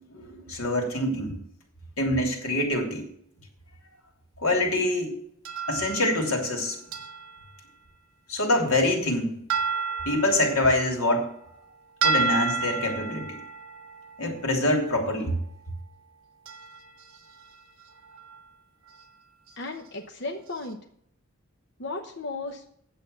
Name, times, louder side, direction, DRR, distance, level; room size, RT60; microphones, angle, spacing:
voice 1, 0.1-1.3 2.0-3.0 4.4-5.1 5.7-6.8 8.3-9.3 10.0-11.3 12.0-13.4 14.2-15.3, left 1 dB, 80° left, 1 dB, 3.1 m, -25 dB
sound 1, 5.4-6.6 6.9-7.6 9.5-11.7 12.0-15.2 16.5-17.6 17.8-18.4 18.9-19.0 19.5-19.6 20.5-20.6, right 5 dB, 70° right, 1.6 m, -32 dB
voice 2, 19.6-20.8 21.8-22.6, left 3 dB, 55° left, 3 dB, 1.0 m, -35 dB
9.2 x 7.8 x 6.8 m, 0.67 s
head